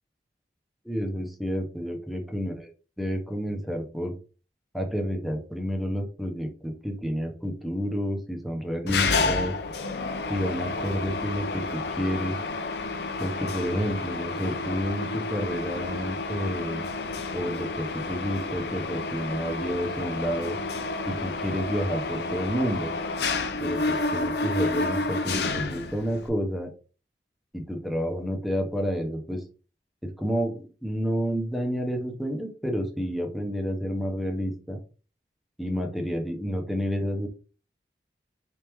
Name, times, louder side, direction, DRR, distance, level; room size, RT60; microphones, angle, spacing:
voice 1, 0.8-2.7 3.0-4.1 4.7-9.5 10.3-12.4 13.2-16.8 17.3-20.6 21.1-22.9 23.6-26.7 27.5-29.4 30.0-34.8 35.6-37.3, equal, ahead, 3 dB, 0.8 m, -30 dB
Mechanisms, 8.9-26.3, left 3 dB, 70° left, 0.6 m, -30 dB
4.4 x 3.5 x 3.0 m, 0.36 s
head